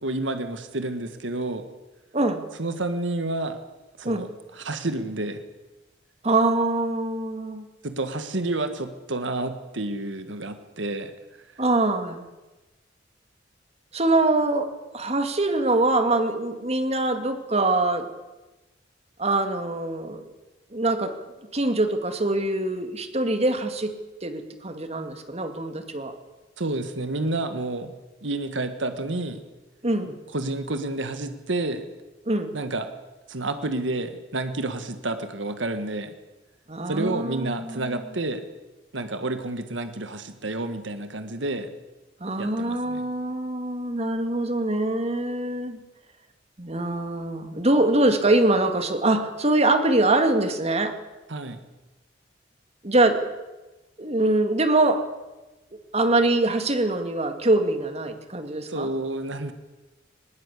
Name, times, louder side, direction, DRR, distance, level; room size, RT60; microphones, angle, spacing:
voice 1, 0.0-1.7 2.6-3.6 4.0-5.4 7.8-11.1 26.6-27.9 28.2-29.4 30.3-31.9 32.5-32.9 33.3-36.1 36.9-38.5 38.9-41.7 42.4-43.1 51.3-51.6 58.7-59.5, right 2 dB, 80° right, 8 dB, 1.6 m, -29 dB
voice 2, 6.2-7.7 11.6-12.2 13.9-14.7 14.9-18.1 19.2-20.2 20.7-21.1 21.5-23.9 24.2-26.1 29.8-30.2 32.3-32.6 36.7-38.0 42.2-45.8 46.6-50.9 52.8-53.2 54.0-55.0 55.9-58.9, right 2 dB, 35° right, 7 dB, 2.3 m, -23 dB
20.0 x 19.0 x 8.4 m, 1.1 s
head